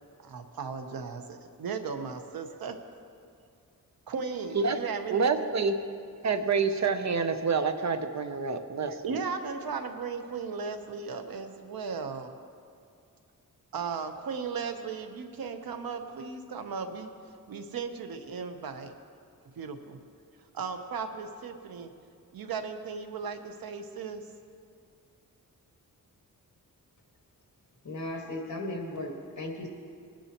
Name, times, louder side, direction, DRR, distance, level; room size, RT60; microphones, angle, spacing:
voice 1, 0.2-2.8 4.1-5.5 8.9-12.3 13.7-17.1 17.5-18.9 19.6-20.0 20.5-21.9 22.3-24.2, right 5 dB, 90° right, 7 dB, 1.0 m, -36 dB
voice 2, 5.1-5.7 6.2-8.9, right 5 dB, 50° right, 8 dB, 0.7 m, -27 dB
voice 3, 27.8-29.7, left 1 dB, 55° left, 0 dB, 2.0 m, -36 dB
20.5 x 10.0 x 3.0 m, 2.3 s
wide cardioid pair, 125°, 35 cm